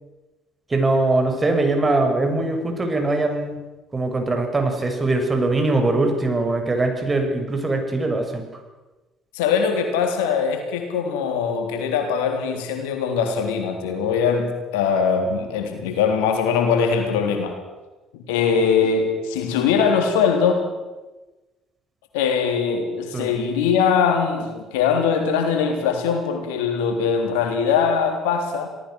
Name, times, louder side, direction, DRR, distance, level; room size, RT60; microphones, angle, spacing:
voice 1, 0.7-3.6 3.9-8.4 23.1-23.3, right 2 dB, 25° right, 4 dB, 6.4 m, -21 dB
voice 2, 9.3-17.6 18.1-20.7 22.1-28.7, left 6 dB, 80° left, 4 dB, 3.8 m, -21 dB
27.0 x 19.0 x 6.6 m, 1.2 s
hypercardioid pair, 55°, 0 cm